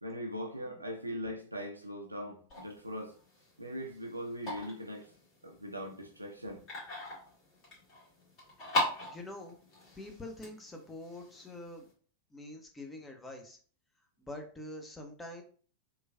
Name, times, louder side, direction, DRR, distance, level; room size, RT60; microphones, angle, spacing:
voice 1, 0.0-3.1 3.6-5.1 5.4-6.6, equal, 85° right, 0.4 m, -40 dB
sound 1, 2.5-11.9, left 1 dB, 35° left, 1.5 m, -40 dB
voice 2, 9.1-9.6 10.0-11.9 12.3-13.6 14.2-15.4, left 1 dB, 10° left, 0.6 m, -45 dB
3.0 x 2.3 x 2.2 m
figure-of-eight pair, 90°, 0 cm